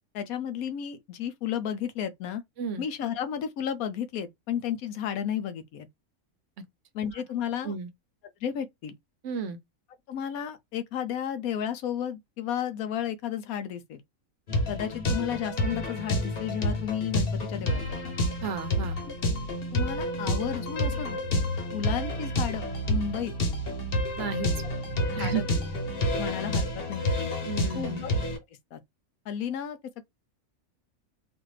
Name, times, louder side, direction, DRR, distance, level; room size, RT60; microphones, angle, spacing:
voice 1, 0.1-2.4 2.8-5.9 6.9-7.7 8.4-9.0 10.1-14.0 14.7-18.1 19.1-19.2 19.7-21.2 21.7-23.3 25.1-25.5 26.2-27.1 27.7-28.1 28.7-28.8 29.3-30.0, left 9 dB, 85° left, 1.1 m, -33 dB
voice 2, 9.2-9.6 18.4-19.0 24.2-24.5 25.1-25.4 27.4-28.1, right 6 dB, 65° right, 1.0 m, -33 dB
sound 1, 14.5-28.4, left 1 dB, 45° left, 1.1 m, -29 dB
4.0 x 2.5 x 3.2 m
omnidirectional pair, 1.5 m